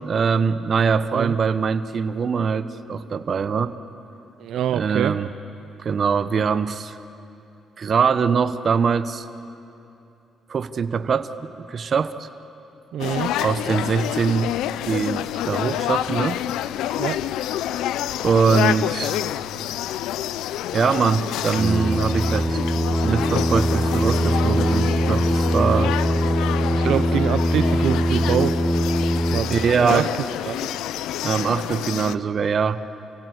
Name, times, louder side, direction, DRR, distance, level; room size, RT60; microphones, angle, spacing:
voice 1, 0.0-3.7 4.7-5.3 5.8-6.9 7.8-9.2 10.5-12.3 13.4-14.6 14.9-16.4 18.2-19.2 20.7-22.6 23.0-26.0 26.8-27.0 29.5-30.1 31.2-32.8, right 6 dB, 50° right, 12 dB, 1.0 m, -22 dB
voice 2, 4.4-5.2 12.9-13.3 17.0-17.2 25.5-25.6 26.7-28.6 29.3-30.1 30.4-30.7, right 10 dB, 75° right, 11 dB, 0.6 m, -25 dB
sound 1, 13.0-32.1, left 12 dB, 90° left, 0.5 m, -28 dB
Singing, 21.5-29.4, equal, 10° left, 1.3 m, -22 dB
29.0 x 16.5 x 8.1 m, 2.7 s
cardioid pair, 90°, 0 cm